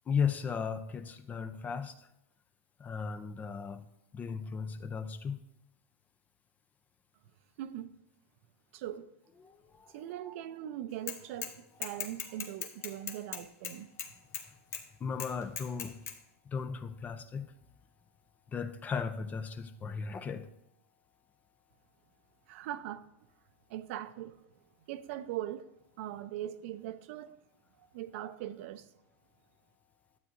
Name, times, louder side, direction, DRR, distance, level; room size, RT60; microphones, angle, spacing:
voice 1, 0.1-2.1 2.8-3.9 4.1-5.4 9.4-10.0 15.0-16.0 16.5-17.5 18.5-20.5, left 6 dB, 20° left, 0.5 m, -36 dB
voice 2, 7.6-7.9 8.7-9.1 9.9-13.9 22.5-23.1 23.7-24.4 24.8-25.7 26.0-27.4 27.8-28.9, right 12 dB, 60° right, 0.6 m, -41 dB
Bicycle / Mechanisms, 11.1-11.5 11.8-14.4 14.7-14.8 15.2-16.2, left 8 dB, 35° left, 1.0 m, -38 dB
12.0 x 8.1 x 2.6 m
supercardioid pair, 145°, 8 cm